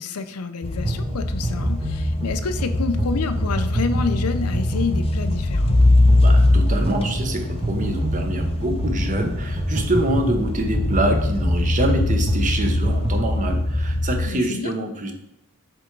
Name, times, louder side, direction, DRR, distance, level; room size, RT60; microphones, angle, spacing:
voice 1, 0.0-5.8 14.3-14.7, left 4 dB, 85° left, 10 dB, 0.6 m, -28 dB
sound 1, 0.6-14.3, left 2 dB, 25° left, 0.6 m, -22 dB
sound 2, 0.9-13.3, right 2 dB, 20° right, 0.5 m, -29 dB
voice 2, 6.2-15.1, right 1 dB, 35° right, 4 dB, 0.9 m, -25 dB
7.6 x 3.5 x 4.6 m, 0.82 s
head